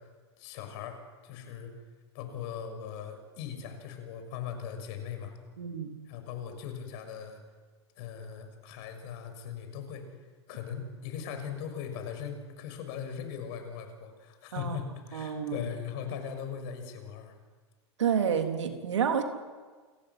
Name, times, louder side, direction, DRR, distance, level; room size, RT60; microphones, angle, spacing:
voice 1, 0.4-1.7 2.1-5.3 6.0-7.4 8.0-10.1 10.5-17.4, left 7 dB, 55° left, 6 dB, 6.5 m, -39 dB
voice 2, 5.6-5.9 14.5-14.8 15.1-15.6 18.0-19.2, right 7 dB, 85° right, 5 dB, 3.6 m, -29 dB
29.0 x 14.5 x 9.7 m, 1.4 s
hypercardioid pair, 110°, 15 cm